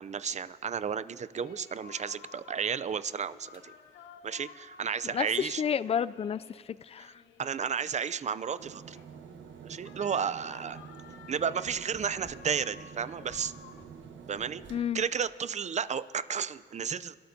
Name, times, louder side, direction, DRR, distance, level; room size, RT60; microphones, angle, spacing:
voice 1, 0.0-3.7 4.2-5.6 7.4-9.0 9.6-10.8 11.3-13.5 14.3-14.6 14.9-17.2, right 7 dB, 35° right, 15 dB, 0.5 m, -33 dB
sound 1, 1.3-13.8, left 6 dB, 75° left, 1.1 m, -54 dB
voice 2, 5.0-7.2 14.7-15.0, left 8 dB, 30° left, 17 dB, 0.4 m, -31 dB
sound 2, 8.6-14.8, right 7 dB, 70° right, 1.1 m, -48 dB
sound 3, 11.2-14.9, equal, 10° left, 2.5 m, -59 dB
29.5 x 12.5 x 2.8 m, 2.2 s
cardioid pair, 90°, 20 cm